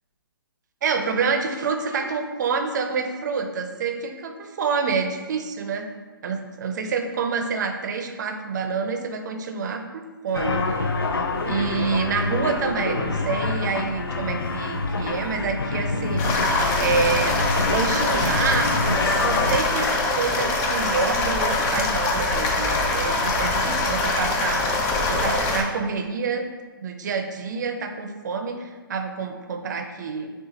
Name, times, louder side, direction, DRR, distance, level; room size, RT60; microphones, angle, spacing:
voice 1, 0.8-5.9 6.2-11.1 11.4-16.5 16.8-17.3 17.7-26.5 26.8-30.3, right 5 dB, 50° right, 5 dB, 0.5 m, -27 dB
sound 1, 10.3-19.6, left 3 dB, 85° left, 0.5 m, -26 dB
sound 2, 16.2-25.6, left 2 dB, 20° left, 0.5 m, -23 dB
6.4 x 2.4 x 2.8 m, 1.4 s
hypercardioid pair, 135°, 12 cm